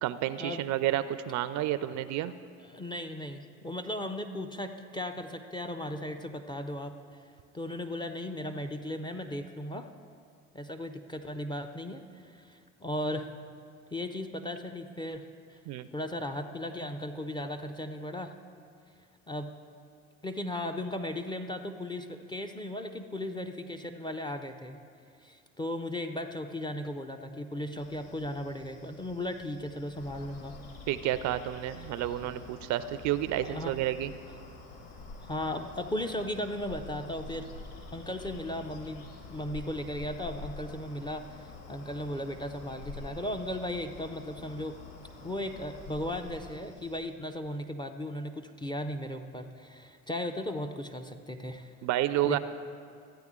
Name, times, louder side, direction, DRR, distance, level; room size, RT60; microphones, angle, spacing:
voice 1, 0.0-2.3 15.7-15.9 30.9-34.1 51.8-52.4, right 13 dB, 45° right, 14 dB, 0.4 m, -30 dB
voice 2, 2.6-7.2 7.5-9.9 10.5-13.3 13.9-15.2 15.5-15.6 15.9-18.3 19.3-19.5 20.2-24.8 25.2-30.6 33.4-33.8 35.2-37.5 37.9-44.8 45.2-51.7 52.2-52.4, left 1 dB, 10° left, 5 dB, 0.4 m, -36 dB
sound 1, 27.8-47.0, left 3 dB, 75° left, 2.2 m, -57 dB
sound 2, 29.9-46.5, left 3 dB, 55° left, 1.7 m, -47 dB
13.5 x 9.1 x 3.6 m, 2.3 s
hypercardioid pair, 75°, 41 cm